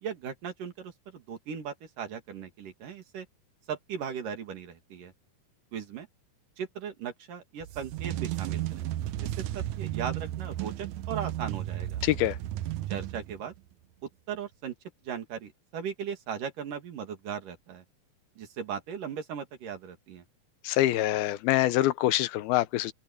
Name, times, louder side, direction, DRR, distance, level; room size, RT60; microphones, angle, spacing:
voice 1, 0.0-3.3 3.7-5.1 5.7-6.1 6.6-8.9 9.2-12.0 12.9-13.5 14.3-14.7 15.0-17.8 18.4-20.2, right 7 dB, 65° right, 3.8 m, -38 dB
sound 1, 7.6-13.6, right 14 dB, 85° right, 1.7 m, -34 dB
voice 2, 12.0-12.4 20.6-22.9, left 15 dB, 90° left, 2.8 m, -25 dB
open air
omnidirectional pair, 4.2 m